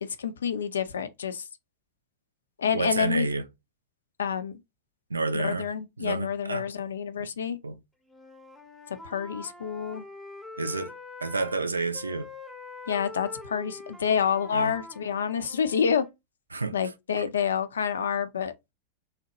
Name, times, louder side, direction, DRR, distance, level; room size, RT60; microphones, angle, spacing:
voice 1, 0.2-1.4 2.6-3.3 4.2-4.5 5.3-7.6 9.0-10.0 12.9-16.0 16.7-18.5, left 7 dB, 70° left, 0.4 m, -28 dB
voice 2, 2.7-3.5 5.1-5.7 6.0-6.7 7.2-7.3 7.6-7.8 10.6-10.9 11.2-12.3 14.5-14.8 16.5-16.8 17.2-17.3, right 3 dB, 80° right, 0.4 m, -30 dB
Wind instrument woodwind instrument, 8.1-11.6 11.9-16.2, left 3 dB, 5° left, 0.7 m, -44 dB
2.7 x 2.1 x 3.9 m
figure-of-eight pair, 90°, 0 cm